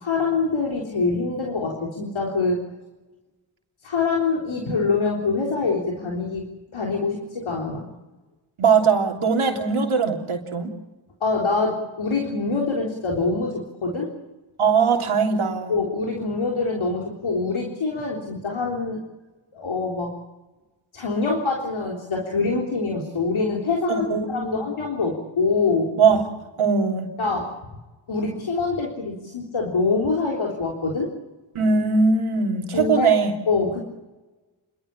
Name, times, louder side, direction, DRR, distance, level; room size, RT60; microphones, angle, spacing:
voice 1, 0.0-2.6 3.8-6.5 6.7-7.8 11.2-14.1 15.2-19.0 19.5-20.1 20.9-25.9 27.2-27.5 28.1-31.1 32.7-33.1 33.5-33.8, left 4 dB, 75° left, -1 dB, 3.8 m, -25 dB
voice 2, 8.6-10.7 14.6-15.7 24.1-24.7 26.0-26.2 26.6-27.1 31.5-33.3, right 5 dB, 90° right, 3 dB, 3.3 m, -20 dB
29.5 x 12.5 x 10.0 m, 1.1 s
cardioid pair, 45°, 48 cm